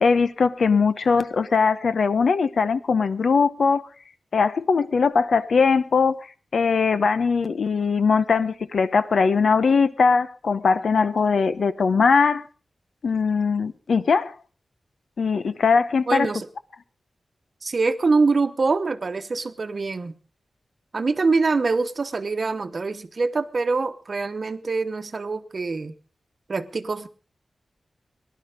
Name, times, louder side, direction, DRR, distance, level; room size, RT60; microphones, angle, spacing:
voice 1, 0.0-3.9 4.3-6.3 6.5-12.5 13.0-14.3 15.2-16.3, left 5 dB, 80° left, 14 dB, 0.8 m, -20 dB
voice 2, 16.1-16.5 17.6-20.1 20.9-25.9 26.5-27.1, right 4 dB, 50° right, 11 dB, 1.0 m, -24 dB
18.5 x 11.5 x 5.0 m, 0.38 s
wide cardioid pair, 115°, 0 cm